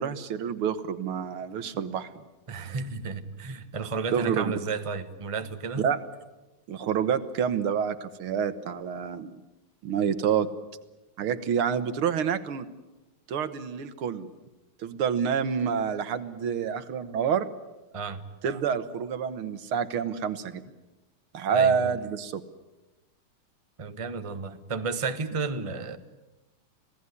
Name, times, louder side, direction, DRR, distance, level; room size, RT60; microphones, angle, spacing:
voice 1, 0.0-2.1 4.1-4.4 5.8-6.0 6.7-9.4 9.8-10.5 11.2-12.7 13.3-14.3 14.8-17.5 18.4-20.6 21.3-22.4, right 7 dB, 90° right, 11 dB, 2.2 m, -28 dB
voice 2, 2.5-5.9 17.9-18.2 21.5-22.0 23.8-26.0, right 4 dB, 20° right, 9 dB, 1.0 m, -32 dB
26.5 x 17.5 x 9.8 m, 1.1 s
omnidirectional pair, 2.3 m